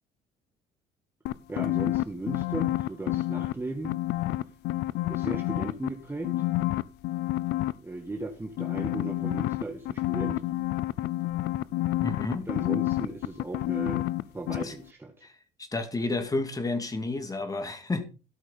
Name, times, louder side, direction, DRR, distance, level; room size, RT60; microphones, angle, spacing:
sound 1, 1.3-3.5 3.8-5.9 6.2-7.7 8.6-14.2 14.5-14.6, left 16 dB, 80° left, 0.6 m, -28 dB
voice 1, 1.5-4.0 5.0-6.4 7.8-10.4 12.4-14.1 14.3-15.3, right 2 dB, 15° right, 1.5 m, -36 dB
voice 2, 12.0-12.5 14.6-14.7 15.2-15.3 15.6-18.1, left 2 dB, 20° left, 2.1 m, -31 dB
13.0 x 6.4 x 5.4 m
cardioid pair, 110°, 17 cm